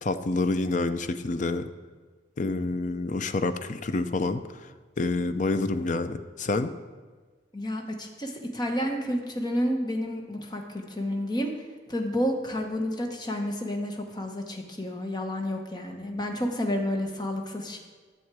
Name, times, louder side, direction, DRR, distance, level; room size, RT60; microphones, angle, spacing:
voice 1, 0.0-1.7 2.4-4.7 5.0-6.7, left 3 dB, 40° left, 10 dB, 0.5 m, -28 dB
voice 2, 7.5-11.5 11.9-17.8, equal, 20° left, 3 dB, 1.0 m, -30 dB
10.5 x 7.2 x 4.8 m, 1.4 s
head